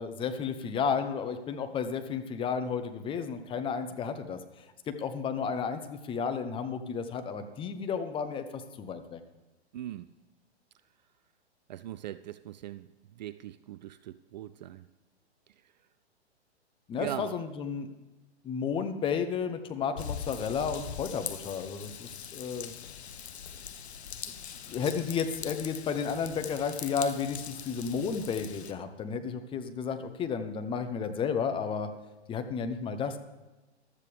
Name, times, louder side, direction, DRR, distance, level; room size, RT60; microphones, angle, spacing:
voice 1, 0.0-9.2 16.9-17.9 18.4-22.8 24.6-31.9 32.3-33.2, left 6 dB, 15° left, 8 dB, 0.8 m, -32 dB
voice 2, 9.7-10.1 11.7-12.9 13.2-14.9 17.0-17.4, right 12 dB, 40° right, 14 dB, 0.4 m, -40 dB
Raindrop / Vehicle horn car horn honking / Trickle dribble, 20.0-28.7, left 8 dB, 70° left, 1.0 m, -42 dB
15.0 x 12.0 x 3.3 m, 1.1 s
hypercardioid pair, 120°, 34 cm